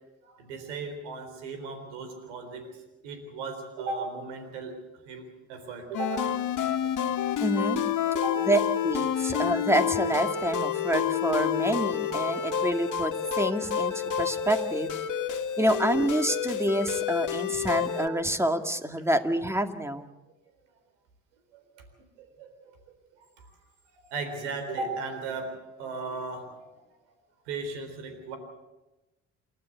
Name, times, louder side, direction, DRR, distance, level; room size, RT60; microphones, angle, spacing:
voice 1, 0.2-4.8 5.1-6.4 6.6-7.6 8.1-8.4 21.5-21.9 22.2-23.6 23.9-26.8 27.5-28.4, right 3 dB, 90° right, 7 dB, 3.9 m, -37 dB
sound 1, 5.9-18.1, left 8 dB, 60° left, 2.0 m, -29 dB
voice 2, 7.4-7.8 8.5-14.9 15.6-20.1, right 1 dB, 10° right, 7 dB, 2.1 m, -27 dB
29.0 x 12.0 x 8.2 m, 1.1 s
hypercardioid pair, 55°, 34 cm